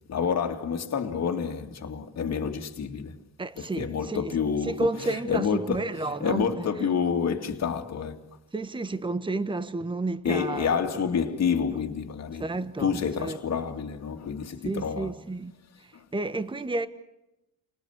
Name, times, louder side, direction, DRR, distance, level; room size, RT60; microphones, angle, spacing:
voice 1, 0.1-3.1 3.6-8.2 10.2-12.5 12.8-15.1 15.9-16.0, left 6 dB, 45° left, 2.5 m, -28 dB
voice 2, 3.4-4.2 4.6-6.9 8.5-11.0 12.4-13.4 14.6-15.5 15.8-16.9, right 2 dB, 15° right, 1.3 m, -31 dB
30.0 x 19.5 x 8.2 m
cardioid pair, 110°, 36 cm